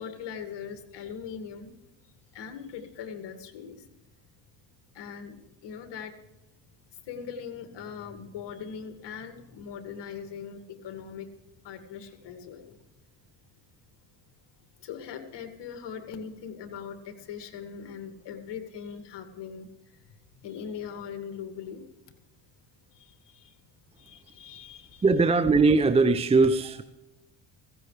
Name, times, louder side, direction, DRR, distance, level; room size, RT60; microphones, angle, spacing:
voice 1, 0.0-1.7 2.0-3.9 4.9-6.2 6.9-11.3 11.6-12.8 14.8-20.0 20.3-21.9 22.9-23.6 24.0-25.0, left 7 dB, 60° left, 7 dB, 2.2 m, -41 dB
voice 2, 25.0-26.8, right 3 dB, 15° right, 12 dB, 0.5 m, -20 dB
15.5 x 15.5 x 3.3 m, 0.97 s
supercardioid pair, 90°, 48 cm